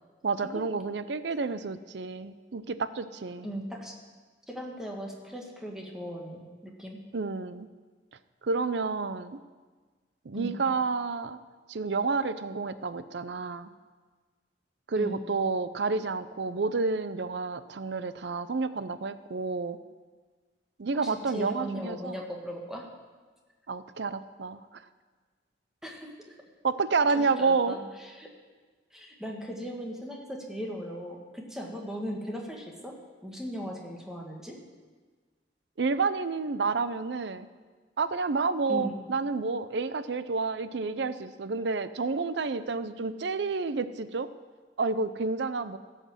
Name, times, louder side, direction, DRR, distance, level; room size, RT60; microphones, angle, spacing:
voice 1, 0.2-3.5 7.1-7.7 8.4-9.4 10.3-11.4 11.7-13.7 14.9-19.8 20.8-22.2 23.7-24.8 26.6-27.8 35.8-37.5 38.0-44.3 44.8-45.8, right 4 dB, 70° right, 13 dB, 0.6 m, -30 dB
voice 2, 3.4-4.0 4.5-7.0 10.3-10.6 15.0-15.2 20.9-22.9 25.8-26.4 27.1-28.3 28.9-34.6 38.7-39.0, equal, 5° right, 0 dB, 1.5 m, -38 dB
16.0 x 5.8 x 7.5 m, 1.4 s
head